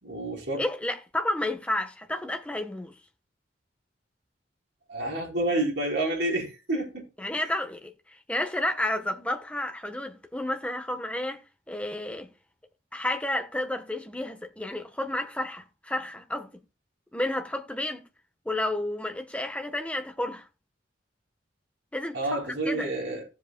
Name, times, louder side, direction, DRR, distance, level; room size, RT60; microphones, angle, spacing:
voice 1, 0.0-0.6 4.9-7.4 22.1-23.3, right 2 dB, 70° right, 4.6 m, -29 dB
voice 2, 0.6-3.0 7.2-12.3 12.9-16.5 17.1-18.0 18.4-20.5 21.9-22.9, left 1 dB, 5° left, 1.1 m, -31 dB
17.0 x 7.6 x 2.2 m
head